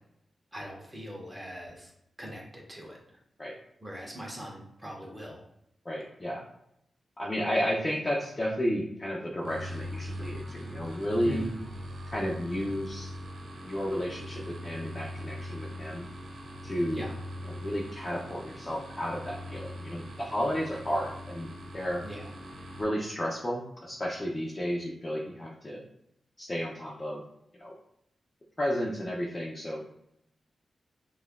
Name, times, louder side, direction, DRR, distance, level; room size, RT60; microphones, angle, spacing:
voice 1, 0.5-1.9 2.2-3.2 3.8-5.4 11.2-11.6 16.9-17.1 22.0-22.3, equal, 10° right, -2 dB, 1.0 m, -41 dB
voice 2, 5.8-6.4 7.2-11.4 12.1-13.1 13.7-16.1 16.6-17.1 17.4-22.0 22.8-25.8 26.4-27.2 27.6-27.7 28.6-29.8, equal, 25° left, -2 dB, 0.5 m, -32 dB
sound 1, 9.4-22.8, equal, 90° right, 0.8 m, -41 dB
5.3 x 2.4 x 2.2 m, 0.78 s
wide cardioid pair, 120°, 0 cm